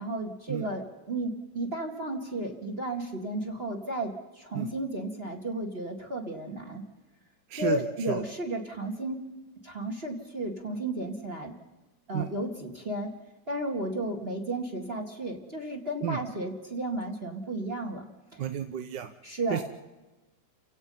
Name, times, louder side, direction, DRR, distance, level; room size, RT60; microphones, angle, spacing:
voice 1, 0.0-6.8 7.5-9.2 9.6-11.5 12.1-13.1 13.5-18.5 19.2-19.6, right 1 dB, 30° right, 4 dB, 2.1 m, -33 dB
voice 2, 18.4-19.1 19.5-19.6, right 9 dB, 60° right, 8 dB, 1.4 m, -31 dB
29.5 x 16.5 x 5.5 m, 1.1 s
omnidirectional pair, 2.4 m